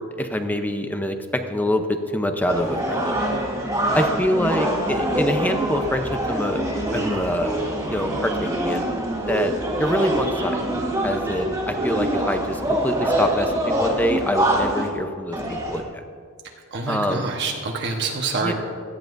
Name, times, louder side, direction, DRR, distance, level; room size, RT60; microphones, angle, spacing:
voice 1, 0.0-3.0 3.9-6.6 6.9-8.9 9.3-9.5 9.8-10.6 11.0-15.4 15.7-15.8 16.9-17.3 18.4-18.5, equal, 10° left, 6 dB, 0.7 m, -25 dB
sound 1, 2.5-14.9 15.3-15.8, right 1 dB, 15° right, 1.8 m, -24 dB
voice 2, 16.4-18.5, right 4 dB, 55° right, 1 dB, 1.2 m, -27 dB
17.0 x 13.0 x 2.6 m, 2.2 s
head